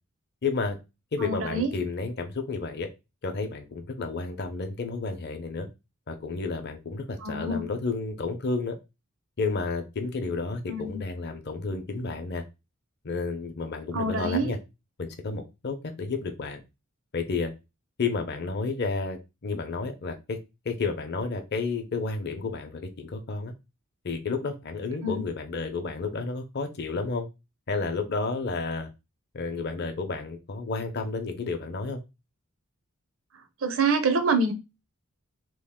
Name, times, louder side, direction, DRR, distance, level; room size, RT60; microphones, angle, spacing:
voice 1, 0.4-0.8 1.1-2.9 3.2-5.7 6.1-8.8 9.4-12.4 13.0-14.6 15.0-16.6 17.1-17.5 18.0-20.4 20.6-23.5 24.0-27.3 27.7-28.9 29.3-32.0, left 4 dB, 50° left, 0.7 m, -31 dB
voice 2, 1.2-1.7 7.2-7.6 10.7-11.0 13.9-14.5 25.0-25.2 33.6-34.5, right 3 dB, 65° right, 0.7 m, -26 dB
3.0 x 2.4 x 3.6 m
head